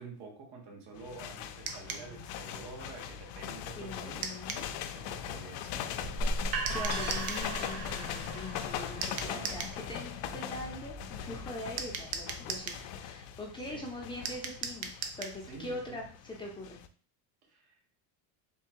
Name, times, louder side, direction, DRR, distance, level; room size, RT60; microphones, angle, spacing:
voice 1, 0.0-5.9 9.1-9.6 13.7-13.9 15.5-16.0 17.4-17.8, right 4 dB, 50° right, 0 dB, 1.2 m, -49 dB
sound 1, 0.9-16.9, left 9 dB, 70° left, 0.5 m, -41 dB
sound 2, 1.7-2.1 4.2-4.7 6.7-7.5 9.0-9.8 11.8-12.8 14.3-15.4, right 6 dB, 75° right, 0.8 m, -38 dB
voice 2, 3.8-4.7 6.7-14.9 15.2-16.8, left 1 dB, 10° left, -1 dB, 0.6 m, -42 dB
sound 3, 6.0-11.8, right 2 dB, 35° right, 0.6 m, -38 dB
3.7 x 2.3 x 4.4 m, 0.41 s
cardioid pair, 140°, 48 cm